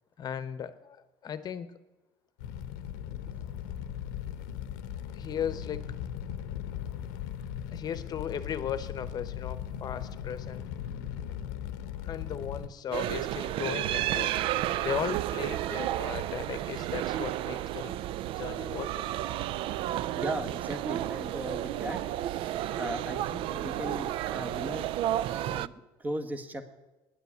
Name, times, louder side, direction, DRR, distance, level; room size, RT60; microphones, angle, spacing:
voice 1, 0.2-1.0 1.2-1.7 5.1-5.9 7.7-10.6 12.0-14.3 14.8-17.9 18.4-19.0, left 8 dB, 40° left, 13 dB, 0.9 m, -36 dB
Fire, 2.4-12.7, left 9 dB, 90° left, 0.7 m, -38 dB
voice 2, 10.9-11.2 19.5-22.0 22.8-24.9 25.4-25.7 26.0-26.7, right 1 dB, 15° right, 9 dB, 1.2 m, -38 dB
sound 1, 12.9-25.7, right 13 dB, 60° right, 0.4 m, -32 dB
10.0 x 8.1 x 9.6 m, 1.1 s
supercardioid pair, 110°, 10 cm